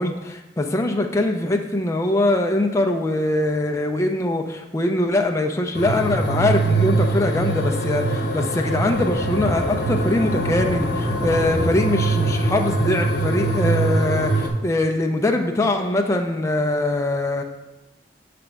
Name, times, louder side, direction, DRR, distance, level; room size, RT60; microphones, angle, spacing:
voice 1, 0.0-17.4, left 2 dB, 15° left, 3 dB, 0.4 m, -22 dB
sound 1, 5.7-14.5, right 2 dB, 70° left, 0.9 m, -23 dB
sound 2, 8.8-14.8, equal, 80° right, 0.9 m, -35 dB
5.9 x 3.3 x 5.2 m, 0.99 s
head